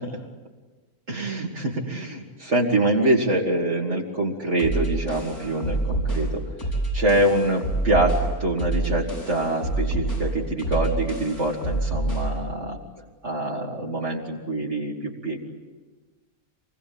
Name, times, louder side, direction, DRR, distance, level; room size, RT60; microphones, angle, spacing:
voice 1, 1.1-6.4 6.9-12.8 13.2-15.5, right 1 dB, 50° right, -3 dB, 2.9 m, -25 dB
sound 1, 4.6-12.4, right 2 dB, 85° left, 8.2 m, -27 dB
27.0 x 21.5 x 8.8 m, 1.3 s
omnidirectional pair, 1.5 m